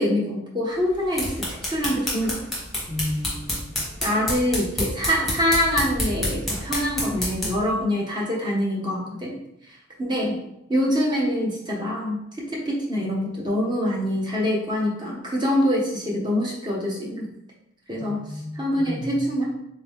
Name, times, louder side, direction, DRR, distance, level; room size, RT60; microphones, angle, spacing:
voice 1, 0.0-2.4 4.0-9.3 9.7-10.4 10.7-17.3 17.9-18.2 18.5-19.4, equal, 20° right, -3 dB, 0.8 m, -25 dB
sound 1, 0.9-7.7, left 1 dB, ahead, 1.0 m, -29 dB
voice 2, 2.9-3.8 18.0-19.3, left 1 dB, 25° left, -1 dB, 0.5 m, -33 dB
3.5 x 2.9 x 3.5 m, 0.81 s
head